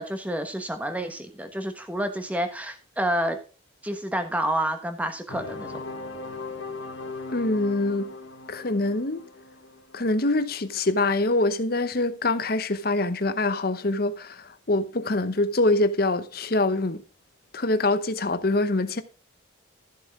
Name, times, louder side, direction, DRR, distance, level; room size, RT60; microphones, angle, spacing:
voice 1, 0.0-3.4 3.8-5.8, right 1 dB, 5° right, 1.1 m, -29 dB
sound 1, 5.3-10.9, left 3 dB, 70° left, 1.4 m, -39 dB
voice 2, 7.3-8.1 8.5-9.2 9.9-17.0 17.5-19.0, left 2 dB, 50° left, 0.8 m, -24 dB
13.5 x 7.3 x 3.6 m
head